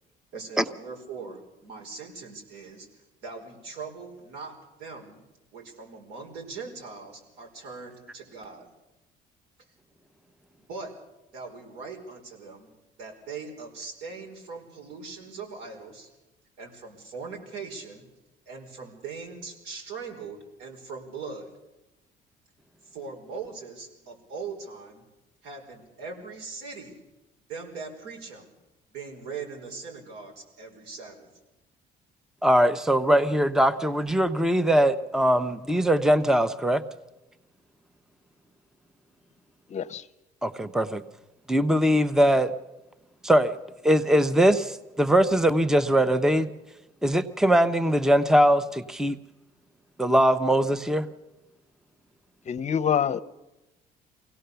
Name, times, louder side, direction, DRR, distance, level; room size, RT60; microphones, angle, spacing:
voice 1, 0.3-5.2 5.5-8.7 10.7-10.9 11.3-12.7 13.0-16.1 16.6-18.1 18.5-21.5 22.8-25.0 25.4-27.0 27.5-28.5 28.9-31.3, right 4 dB, 85° right, 1 dB, 5.0 m, -40 dB
voice 2, 32.4-36.8 40.4-41.0 41.5-42.5 43.2-43.6 43.8-46.5 47.0-49.2 50.0-51.1, equal, 5° right, 12 dB, 0.8 m, -21 dB
voice 3, 39.7-40.0 52.5-53.2, left 8 dB, 45° left, 14 dB, 0.8 m, -26 dB
23.5 x 17.5 x 6.9 m, 1.0 s
cardioid pair, 110°, 17 cm